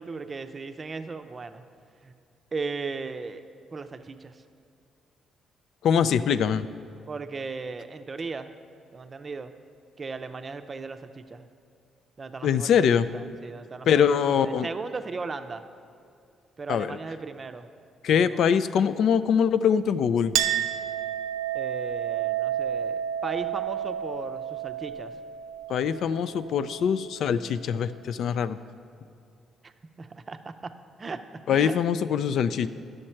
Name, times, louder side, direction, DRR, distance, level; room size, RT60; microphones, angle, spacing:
voice 1, 0.0-1.6 2.0-2.1 2.5-3.4 3.7-4.4 7.1-8.5 8.9-9.5 10.0-11.5 12.2-12.7 13.1-15.6 16.6-17.7 18.1-18.4 21.5-25.1 29.6-29.7 30.0-30.7 31.0-31.8, right 4 dB, 35° right, 9 dB, 0.5 m, -37 dB
voice 2, 5.8-6.7 12.4-13.1 13.9-14.7 16.7-17.0 18.0-20.3 25.7-28.6 31.5-32.7, left 7 dB, 70° left, 14 dB, 0.3 m, -23 dB
Chink clink, 20.3-27.4, right 10 dB, 90° right, 0.4 m, -31 dB
11.0 x 6.5 x 4.4 m, 2.5 s
cardioid pair, 90°, 0 cm